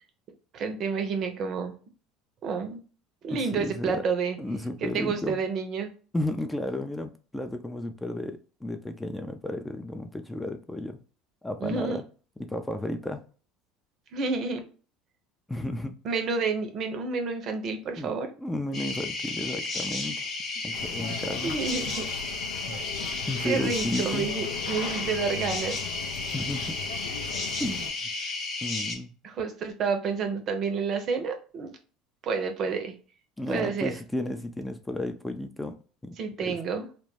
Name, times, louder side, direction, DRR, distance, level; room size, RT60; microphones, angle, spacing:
voice 1, 0.5-1.7 2.4-2.8 3.2-4.4 4.8-5.9 11.6-12.0 14.1-14.6 16.0-18.3 21.4-22.1 23.4-25.8 29.2-31.7 32.2-32.9 33.5-33.9 36.2-36.9, right 5 dB, 50° right, 0.6 m, -29 dB
voice 2, 3.3-4.0 4.4-5.4 6.1-11.0 11.4-12.1 12.4-13.2 15.5-16.0 18.0-18.1 18.4-20.3 20.6-21.6 22.7-22.9 23.3-24.3 26.3-26.8 27.6-28.0 28.6-29.1 33.4-35.8 36.0-36.6, left 1 dB, 10° left, 0.4 m, -33 dB
sound 1, 18.7-29.0, left 3 dB, 45° left, 0.8 m, -33 dB
sound 2, 20.7-27.9, left 7 dB, 80° left, 0.4 m, -38 dB
2.2 x 2.1 x 3.2 m
hypercardioid pair, 70°, 0 cm